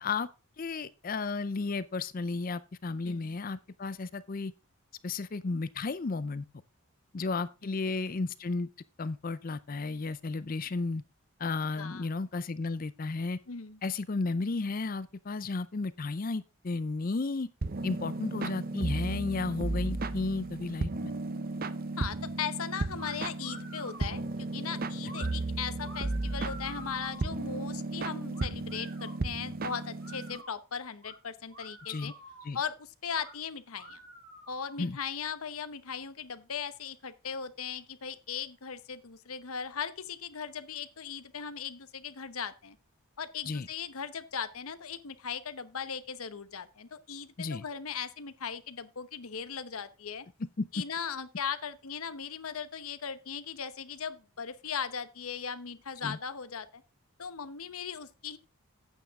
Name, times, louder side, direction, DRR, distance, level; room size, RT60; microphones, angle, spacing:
voice 1, 0.6-4.5 5.0-6.4 7.1-8.7 9.0-11.0 11.4-13.4 13.8-17.5 17.8-21.1 31.9-32.1 32.4-32.6 34.8-35.0 43.5-43.7 47.4-47.6 50.6-50.7 56.0-56.2, left 3 dB, 40° left, 0.5 m, -33 dB
voice 2, 11.7-12.1 13.5-13.8 22.0-32.1 32.5-34.0 34.5-42.8 43.2-50.3 50.7-56.8 57.2-58.4, left 7 dB, 75° left, 0.9 m, -38 dB
sound 1, 17.6-30.4, right 2 dB, 40° right, 0.6 m, -35 dB
sound 2, 23.0-23.1 23.4-24.2 25.0-25.3 25.8-27.3 28.3-29.2 29.7-30.6 31.0-31.1 31.5-32.6 33.1-33.3 33.7-34.8, right 1 dB, 60° right, 3.8 m, -48 dB
9.4 x 9.0 x 3.6 m
head